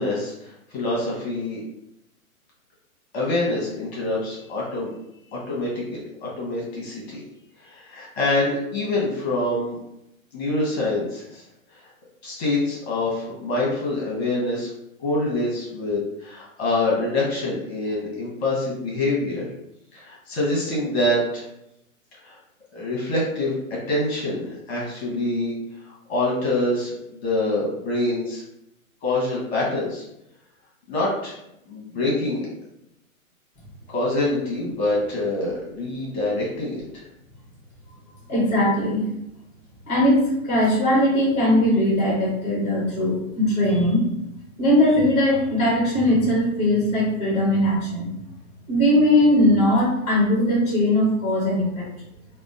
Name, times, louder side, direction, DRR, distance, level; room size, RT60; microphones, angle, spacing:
voice 1, 0.0-1.6 3.1-4.9 5.3-7.2 7.6-9.8 10.3-11.4 11.7-11.8 12.2-14.7 15.0-19.5 19.9-21.5 22.2-22.3 22.7-25.5 26.1-28.4 29.0-30.0 30.9-31.4 31.7-32.5 33.9-37.0, left 2 dB, 45° left, -5 dB, 1.0 m, -25 dB
voice 2, 38.3-39.0 39.9-44.0 44.6-48.1 48.7-51.9, left 1 dB, 15° left, -5 dB, 1.0 m, -20 dB
2.8 x 2.1 x 2.5 m, 0.83 s
hypercardioid pair, 150°, 42 cm